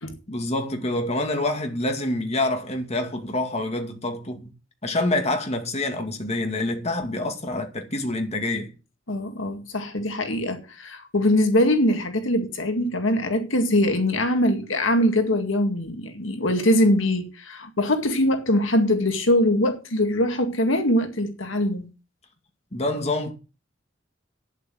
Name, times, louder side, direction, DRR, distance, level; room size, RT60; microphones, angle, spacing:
voice 1, 0.3-4.5 4.8-8.7 22.7-23.3, left 2 dB, 35° left, 2.2 m, -26 dB
voice 2, 9.1-21.9, left 1 dB, 75° left, 2.0 m, -22 dB
9.5 x 8.1 x 7.8 m
head